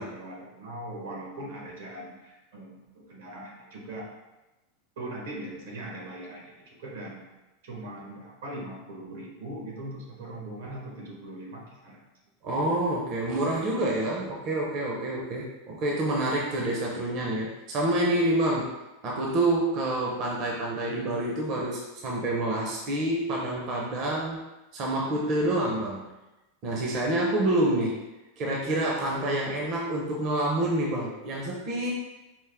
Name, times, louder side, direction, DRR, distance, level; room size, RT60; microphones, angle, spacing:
voice 1, 0.0-4.1 5.0-7.3 7.6-12.0, right 1 dB, 80° right, -1 dB, 1.1 m, -40 dB
voice 2, 12.4-18.7 19.0-24.4 24.7-26.1 26.6-28.0 28.4-31.9, right 1 dB, 40° right, -2 dB, 0.6 m, -27 dB
4.5 x 2.1 x 3.4 m, 1.0 s
supercardioid pair, 150°, 0 cm